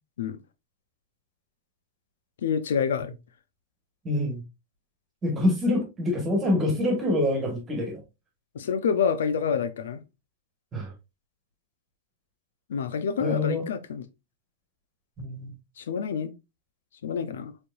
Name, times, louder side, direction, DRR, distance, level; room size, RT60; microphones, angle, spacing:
voice 1, 2.4-3.1 8.5-10.0 12.7-14.1 15.8-16.3 17.0-17.5, left 6 dB, 85° left, 0.6 m, -27 dB
voice 2, 4.0-4.4 5.2-8.0 10.7-10.9 13.2-13.7 15.2-15.5, left 1 dB, 25° right, 1.7 m, -26 dB
4.5 x 3.4 x 2.6 m
hypercardioid pair, 120°, 0 cm